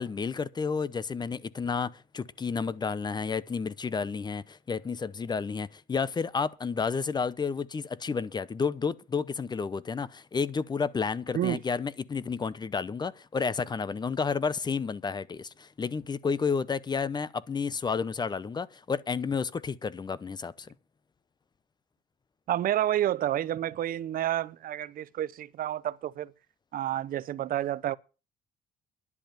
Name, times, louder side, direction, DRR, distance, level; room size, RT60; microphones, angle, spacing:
voice 1, 0.0-20.7, left 5 dB, 25° left, 0.7 m, -31 dB
voice 2, 22.5-26.3 26.7-28.0, right 12 dB, 55° right, 0.7 m, -29 dB
11.0 x 7.8 x 8.9 m
cardioid pair, 110°, 17 cm